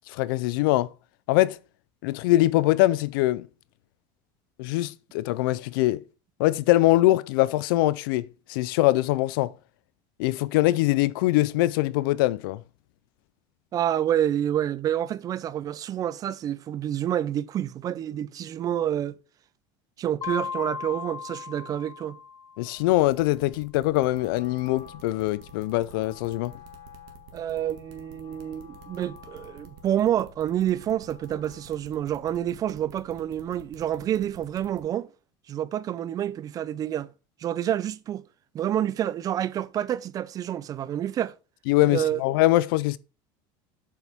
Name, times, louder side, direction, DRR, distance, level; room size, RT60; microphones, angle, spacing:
voice 1, 0.1-0.9 1.3-1.6 2.0-3.5 4.6-6.0 6.4-9.5 10.2-12.6 22.6-26.5 41.7-43.0, left 17 dB, 85° left, 0.5 m, -23 dB
voice 2, 13.7-19.2 20.0-22.2 27.3-35.1 35.5-37.1 37.4-38.2 38.5-41.3 41.8-42.2, right 11 dB, 35° right, 0.5 m, -28 dB
Mallet percussion, 20.2-22.8, left 6 dB, 30° left, 1.2 m, -36 dB
sound 1, 22.8-34.8, right 5 dB, 70° right, 1.9 m, -49 dB
Wind instrument woodwind instrument, 23.9-31.9, left 6 dB, 65° left, 4.7 m, -51 dB
8.0 x 7.3 x 3.6 m
cardioid pair, 140°, 11 cm